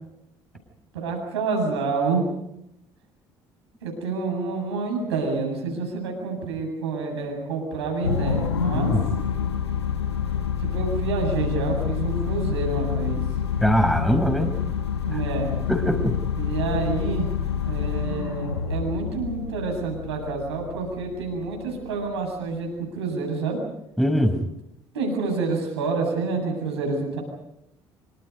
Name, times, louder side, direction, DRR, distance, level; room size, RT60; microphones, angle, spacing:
voice 1, 0.9-2.2 3.8-8.9 10.6-13.2 15.0-15.5 16.4-17.3 17.6-23.6 24.9-27.2, right 4 dB, 80° right, 1 dB, 7.9 m, -28 dB
sound 1, 8.0-22.5, left 7 dB, 85° left, 1.3 m, -27 dB
voice 2, 8.7-9.1 13.6-14.5 15.7-16.2 24.0-24.4, equal, ahead, 6 dB, 5.5 m, -22 dB
27.0 x 26.0 x 5.4 m, 0.84 s
figure-of-eight pair, 55°, 14 cm